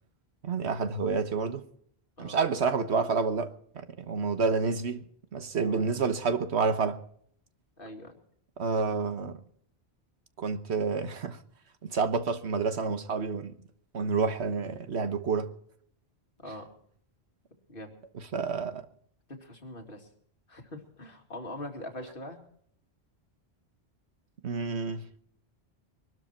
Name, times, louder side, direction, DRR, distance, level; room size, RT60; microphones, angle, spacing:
voice 1, 0.4-1.6 2.2-5.1 5.3-7.0 8.6-9.4 10.4-11.4 11.8-13.6 13.9-15.5 18.3-18.8 24.4-25.2, right 4 dB, 85° right, 1.4 m, -29 dB
voice 2, 5.5-5.9 7.8-8.2 16.4-16.7 17.7-18.0 19.3-20.1 20.5-22.4, left 1 dB, 55° left, 2.8 m, -42 dB
23.0 x 12.5 x 4.4 m
omnidirectional pair, 1.1 m